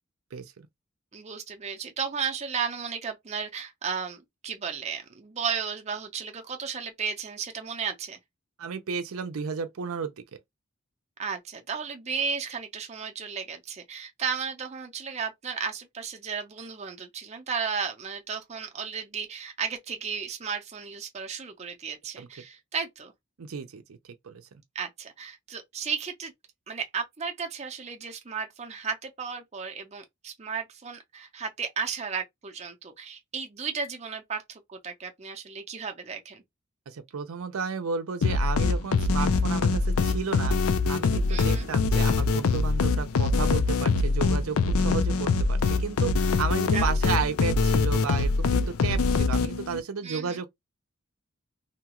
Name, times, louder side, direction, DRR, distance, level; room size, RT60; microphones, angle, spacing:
voice 1, 0.3-0.7 8.6-10.1 22.2-22.3 23.4-24.0 24.2-24.4 36.9-50.5, right 5 dB, 85° right, 0.5 m, -33 dB
voice 2, 1.1-8.2 11.2-23.1 24.7-26.3 26.7-36.4 41.3-41.7 46.7-46.9 50.0-50.4, right 6 dB, 30° right, 0.5 m, -34 dB
sound 1, 38.2-49.8, left 4 dB, 90° left, 0.4 m, -24 dB
2.8 x 2.3 x 2.9 m
head